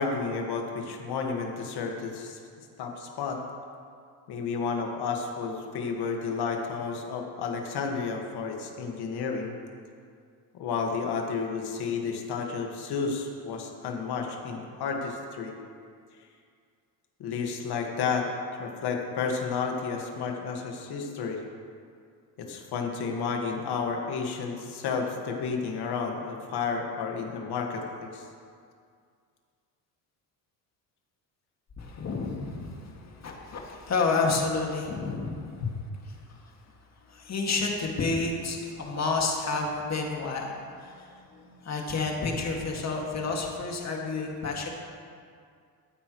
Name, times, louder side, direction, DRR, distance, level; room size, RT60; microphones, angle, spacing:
voice 1, 0.0-2.4 2.8-3.4 4.3-9.5 10.5-15.6 17.2-18.3 18.6-21.4 22.4-28.3 35.6-35.7, left 5 dB, 60° left, 2 dB, 1.8 m, -31 dB
voice 2, 31.8-35.6 36.3-36.5 37.1-44.7, left 3 dB, 35° left, 0 dB, 2.2 m, -30 dB
15.0 x 9.5 x 3.1 m, 2.2 s
supercardioid pair, 85°, 43 cm